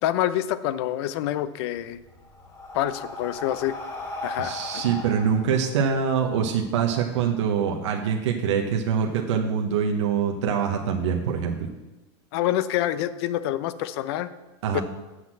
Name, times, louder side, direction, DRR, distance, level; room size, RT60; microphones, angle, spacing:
voice 1, 0.0-2.0 2.7-3.7 4.2-4.8 12.3-14.3 14.7-14.8, left 13 dB, 65° left, 14 dB, 0.7 m, -27 dB
Breathing, 1.8-6.5, left 2 dB, 20° left, 2.5 m, -37 dB
voice 2, 4.4-11.5 14.6-14.8, right 7 dB, 90° right, 2 dB, 1.0 m, -24 dB
8.0 x 5.9 x 7.5 m, 1.1 s
supercardioid pair, 135°, 15 cm